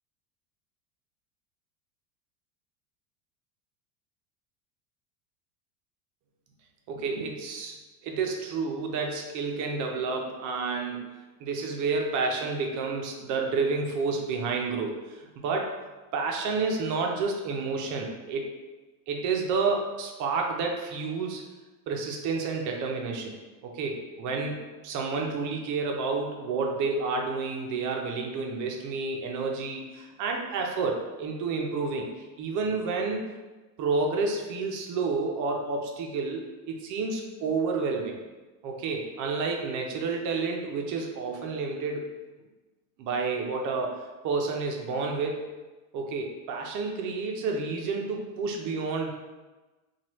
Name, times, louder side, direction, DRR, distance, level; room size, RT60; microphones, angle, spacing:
voice 1, 6.9-7.8 8.0-11.1 11.4-15.7 16.1-18.5 19.1-21.4 21.9-23.3 23.6-32.0 32.4-33.2 33.8-38.2 38.6-42.1 43.0-45.5 45.9-49.1, right 4 dB, 40° right, 1 dB, 0.5 m, -30 dB
3.0 x 2.3 x 2.9 m, 1.2 s
supercardioid pair, 110°, 49 cm